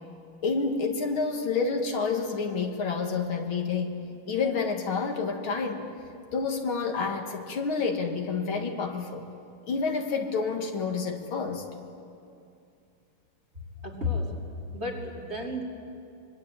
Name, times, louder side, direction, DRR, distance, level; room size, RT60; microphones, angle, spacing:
voice 1, 0.4-3.9 4.3-5.9 6.3-9.3 9.7-11.6, left 4 dB, 70° left, 3 dB, 2.6 m, -29 dB
voice 2, 13.8-14.5 14.7-15.6, left 2 dB, 30° right, 0 dB, 2.9 m, -32 dB
25.5 x 22.5 x 8.9 m, 2.5 s
omnidirectional pair, 2.4 m